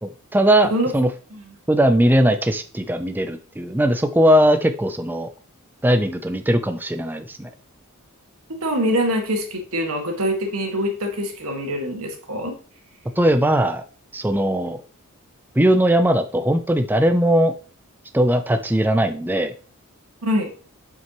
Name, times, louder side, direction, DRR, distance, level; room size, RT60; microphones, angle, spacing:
voice 1, 0.0-1.1 1.7-5.3 5.8-7.5 13.2-13.8 14.1-14.8 15.6-17.5 18.1-19.5, right 1 dB, 10° right, 8 dB, 0.4 m, -19 dB
voice 2, 8.6-12.5 20.2-20.5, equal, 90° right, 3 dB, 1.8 m, -24 dB
7.6 x 5.8 x 3.0 m, 0.38 s
head